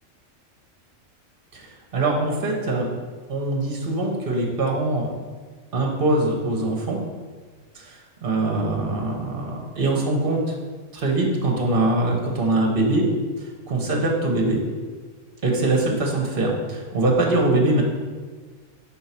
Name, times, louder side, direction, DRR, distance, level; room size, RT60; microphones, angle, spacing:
voice 1, 1.5-2.9 3.3-5.1 5.7-7.0 7.7-10.5 10.9-13.1 13.4-14.6 15.4-17.8, right 2 dB, 45° right, 0 dB, 1.2 m, -23 dB
4.6 x 4.1 x 5.8 m, 1.5 s
omnidirectional pair, 1.4 m